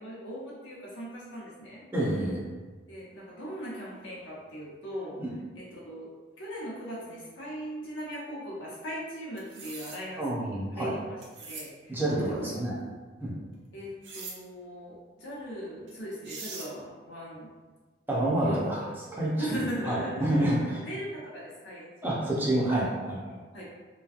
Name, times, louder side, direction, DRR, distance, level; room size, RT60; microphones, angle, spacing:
voice 1, 0.0-1.8 2.9-5.2 5.5-6.1 6.4-12.8 13.7-17.5 18.2-19.0 19.4-22.7 23.2-23.6, equal, 85° left, -7 dB, 1.0 m, -39 dB
voice 2, 1.9-2.4 5.2-5.3 10.2-10.9 11.9-12.7 13.2-13.3 18.1-18.8 19.1-20.8 22.0-23.2, right 1 dB, 10° right, -6 dB, 0.6 m, -28 dB
sound 1, 9.4-10.0 11.2-11.7 14.0-14.4 15.9-16.0 16.2-16.7, right 4 dB, 80° right, 0.5 m, -41 dB
3.0 x 2.3 x 2.4 m, 1.3 s
head